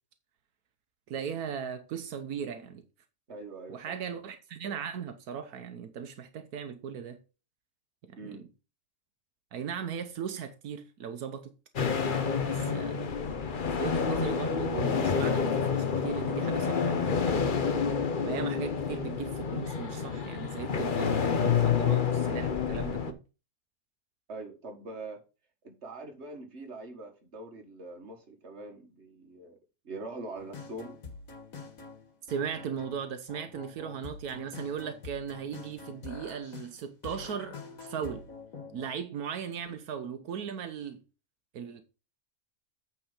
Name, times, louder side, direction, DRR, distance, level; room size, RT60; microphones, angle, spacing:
voice 1, 1.1-2.8 3.7-7.2 8.1-8.4 9.5-11.5 12.4-13.0 13.8-17.6 18.2-23.2 32.3-38.2 38.7-41.0 41.5-41.8, right 7 dB, 85° right, 1.4 m, -38 dB
voice 2, 3.3-3.9 8.2-8.5 24.3-25.2 25.6-29.6 29.8-31.0, right 2 dB, 50° right, 1.9 m, -43 dB
sound 1, 11.8-23.1, left 6 dB, 40° left, 0.9 m, -28 dB
sound 2, 30.3-38.9, left 4 dB, 65° left, 2.2 m, -46 dB
8.7 x 4.6 x 5.5 m
omnidirectional pair, 1.5 m